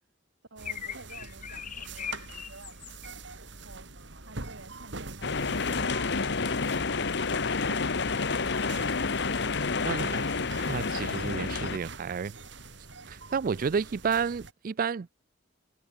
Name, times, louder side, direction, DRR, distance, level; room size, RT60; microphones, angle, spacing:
voice 1, 0.5-3.9 4.3-6.0, right 2 dB, 85° right, 3.6 m, -51 dB
sound 1, 0.6-3.1, left 9 dB, 45° left, 0.8 m, -39 dB
sound 2, 0.6-14.5, right 3 dB, 70° right, 3.6 m, -45 dB
sound 3, 5.2-11.8, left 4 dB, 65° left, 1.2 m, -29 dB
voice 2, 9.8-10.3 10.7-12.4 13.1-15.1, right 6 dB, 50° right, 0.4 m, -31 dB
head